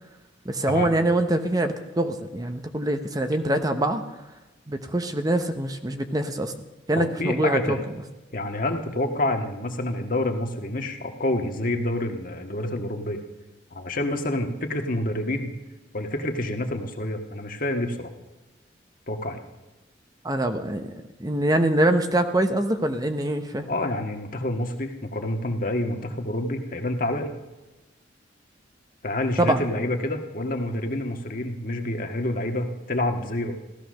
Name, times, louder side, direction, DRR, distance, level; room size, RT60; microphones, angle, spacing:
voice 1, 0.5-4.0 4.7-6.5 6.9-7.8 20.2-20.9 21.2-23.7 29.4-29.6, right 1 dB, 20° right, 7 dB, 0.9 m, -24 dB
voice 2, 7.0-7.8 8.3-13.2 13.7-15.5 15.9-18.1 19.1-19.4 23.7-27.3 29.0-33.5, left 1 dB, 50° left, 4 dB, 1.7 m, -28 dB
15.5 x 14.0 x 6.4 m, 1.1 s
head